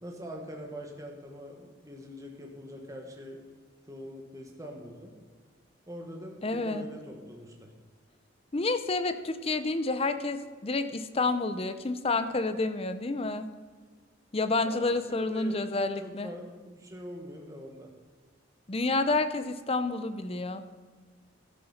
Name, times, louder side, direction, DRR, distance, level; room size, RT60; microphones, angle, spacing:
voice 1, 0.0-3.4 3.9-5.2 5.9-7.7 14.6-17.9, equal, 15° right, 1 dB, 1.3 m, -43 dB
voice 2, 6.4-6.8 8.5-13.5 14.3-16.3 18.7-20.6, left 3 dB, 30° left, 10 dB, 0.6 m, -29 dB
13.0 x 6.7 x 5.8 m, 1.5 s
head